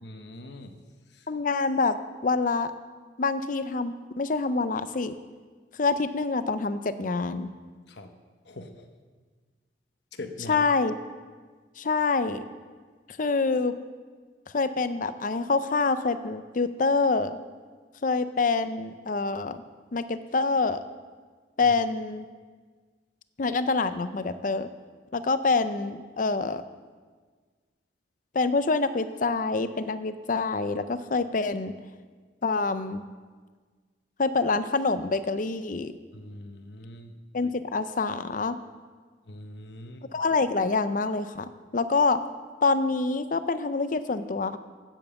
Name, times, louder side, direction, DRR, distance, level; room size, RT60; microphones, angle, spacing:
voice 1, 0.0-0.8 1.1-1.3 7.9-8.1 8.4-8.9 10.1-10.7 21.6-21.7 36.1-37.1 39.3-40.1, left 1 dB, 65° left, 7 dB, 1.0 m, -42 dB
voice 2, 1.3-2.0 2.2-2.7 3.2-5.1 5.8-7.5 10.5-10.9 11.8-12.4 13.2-13.8 14.5-17.4 18.0-19.6 19.9-20.8 21.6-22.2 23.4-24.7 25.1-26.6 28.3-31.7 32.4-33.0 34.2-36.0 37.3-38.6 40.1-42.2 42.6-44.6, left 4 dB, 45° left, 12 dB, 0.5 m, -26 dB
9.1 x 8.8 x 7.1 m, 1.5 s
head